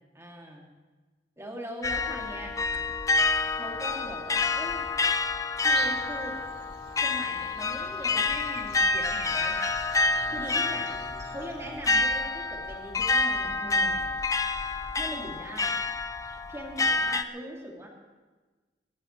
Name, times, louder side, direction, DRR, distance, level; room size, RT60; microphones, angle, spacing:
voice 1, 0.1-0.7 1.4-2.5 3.5-4.9 5.6-6.3 7.0-9.6 10.3-14.2 14.9-15.8 16.5-17.9, equal, 15° right, -1 dB, 2.8 m, -41 dB
sound 1, 1.8-17.2, left 3 dB, 20° left, 0.5 m, -28 dB
Breathing, 5.7-11.8, right 5 dB, 65° right, 1.2 m, -44 dB
26.5 x 14.5 x 3.3 m, 1.3 s
head